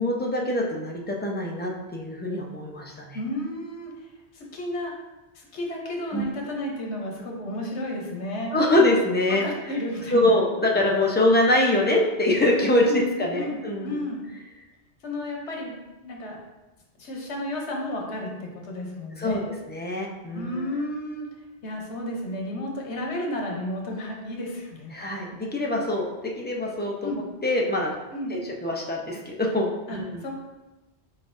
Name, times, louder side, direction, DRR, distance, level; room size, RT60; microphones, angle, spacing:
voice 1, 0.0-3.2 6.1-6.2 8.5-9.4 10.1-14.0 19.2-20.6 24.9-26.1 26.4-27.1 27.4-27.9 28.3-30.2, left 1 dB, 15° left, -1 dB, 0.4 m, -24 dB
voice 2, 3.1-3.9 4.3-4.9 5.3-8.5 9.3-10.4 12.9-13.6 13.8-14.2 15.0-16.4 17.0-19.4 20.3-21.3 21.6-24.9 27.0-27.2 28.1-28.3 29.9-30.3, left 1 dB, 85° left, 0 dB, 1.2 m, -32 dB
4.7 x 3.9 x 2.6 m, 1.1 s
omnidirectional pair, 1.1 m